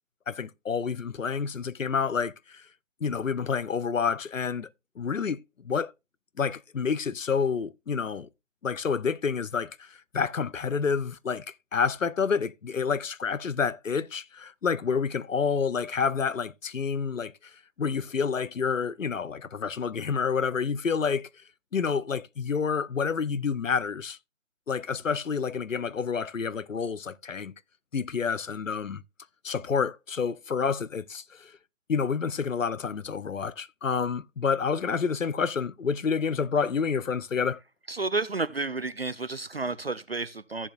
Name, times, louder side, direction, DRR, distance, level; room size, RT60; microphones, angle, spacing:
voice 1, 0.3-2.6 3.0-4.7 5.0-5.9 6.4-8.3 8.6-17.3 17.8-21.3 21.7-24.2 24.7-27.5 27.9-29.0 29.4-31.5 31.9-37.6, left 6 dB, 75° left, 0.7 m, -29 dB
voice 2, 37.9-40.7, right 3 dB, 50° right, 0.5 m, -31 dB
14.5 x 7.2 x 2.3 m
figure-of-eight pair, 155°, 39 cm